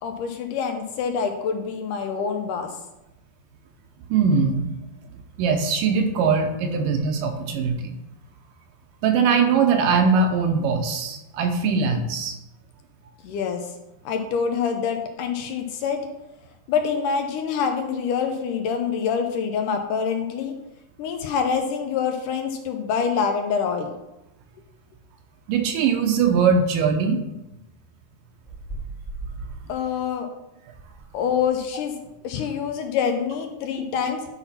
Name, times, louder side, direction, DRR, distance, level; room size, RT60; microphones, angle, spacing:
voice 1, 0.0-2.8 13.2-13.8 14.1-16.0 16.7-20.5 21.0-23.9 29.7-30.3 31.1-32.0 32.2-34.2, left 6 dB, 75° left, 5 dB, 2.1 m, -26 dB
voice 2, 4.1-4.7 5.4-7.9 9.0-12.4 25.5-27.2 32.4-32.5, right 5 dB, 75° right, 5 dB, 2.4 m, -21 dB
sound 1, 28.4-29.6 30.7-31.0 31.3-31.5, right 3 dB, 20° left, 1.0 m, -36 dB
11.0 x 4.0 x 5.7 m, 0.93 s
omnidirectional pair, 4.1 m